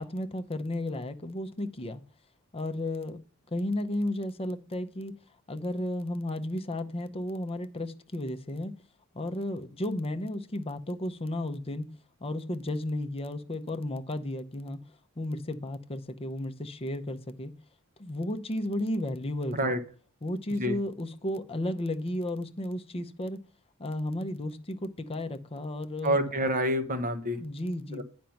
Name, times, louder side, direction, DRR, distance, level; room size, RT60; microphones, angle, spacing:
voice 1, 0.0-2.0 2.5-3.2 3.5-5.2 5.5-8.7 9.1-11.9 12.2-14.8 15.2-17.5 18.0-19.7 20.2-23.4 23.8-26.2 27.4-28.0, left 1 dB, 25° left, 0.7 m, -33 dB
voice 2, 26.0-27.4 27.9-28.0, equal, 40° right, 1.0 m, -27 dB
9.0 x 5.2 x 5.8 m
head